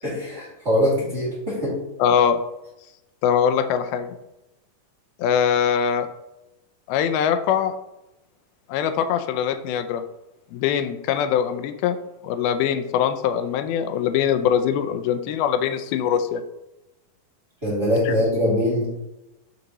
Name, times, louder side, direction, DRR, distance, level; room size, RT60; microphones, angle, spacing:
voice 1, 0.0-1.8 17.6-18.9, left 1 dB, 20° right, -8 dB, 2.1 m, -22 dB
voice 2, 2.0-2.4 3.2-4.1 5.2-6.1 6.9-7.8 8.7-10.0 10.5-12.0 12.2-16.4 18.1-18.2, left 8 dB, 85° left, 8 dB, 2.5 m, -22 dB
6.6 x 6.5 x 2.9 m, 0.91 s
omnidirectional pair, 4.3 m